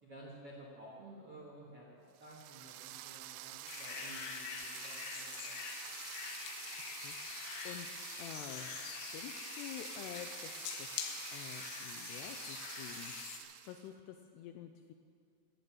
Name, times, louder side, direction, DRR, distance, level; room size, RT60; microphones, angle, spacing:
voice 1, 0.0-5.6, right 1 dB, 45° right, -4 dB, 1.8 m, -53 dB
sound 1, 2.2-13.9, right 14 dB, 85° right, 2.4 m, -48 dB
sound 2, 3.7-13.4, left 7 dB, 75° left, 3.0 m, -45 dB
voice 2, 7.0-10.9 11.3-14.9, left 10 dB, 90° left, 6 dB, 2.4 m, -49 dB
14.5 x 10.0 x 8.6 m, 2.1 s
omnidirectional pair, 5.5 m